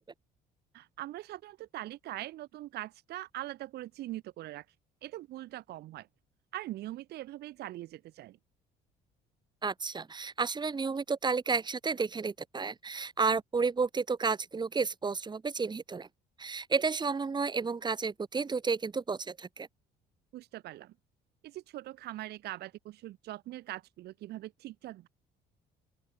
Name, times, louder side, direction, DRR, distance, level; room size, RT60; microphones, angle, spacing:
voice 1, 0.7-4.7 5.0-6.1 6.5-8.4 20.3-20.9 21.4-25.1, right 15 dB, 75° right, 3.7 m, -42 dB
voice 2, 9.6-16.1 16.4-19.7, right 4 dB, 25° right, 4.6 m, -31 dB
open air
cardioid pair, 110°, 17 cm